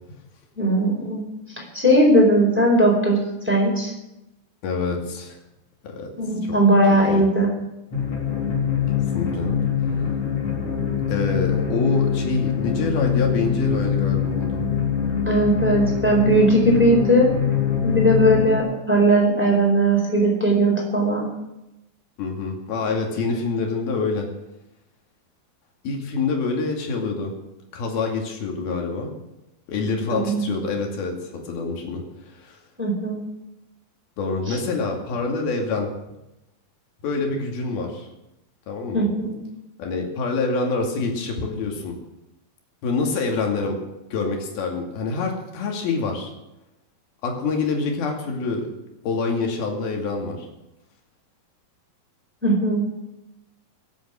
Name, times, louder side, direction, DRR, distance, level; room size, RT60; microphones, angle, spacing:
voice 1, 0.6-1.2 1.7-3.2 3.5-3.9 6.2-7.5 15.3-17.3 17.8-21.3 30.1-30.4 32.8-33.2 38.9-39.4 52.4-52.8, right 1 dB, 5° right, -1 dB, 4.3 m, -18 dB
voice 2, 4.6-5.4 5.8-6.1 6.4-6.5 7.1-7.2 9.1-9.5 11.1-14.7 22.2-24.3 25.8-27.3 27.7-29.1 29.7-32.6 34.2-35.9 37.0-38.1 38.7-39.1 39.8-41.9 42.8-43.8 44.1-46.3 47.2-48.7 49.0-50.5, left 4 dB, 85° left, 1 dB, 4.3 m, -26 dB
sound 1, 7.9-18.6, left 7 dB, 40° left, 4.1 m, -24 dB
24.5 x 8.6 x 6.4 m, 0.91 s
omnidirectional pair, 4.2 m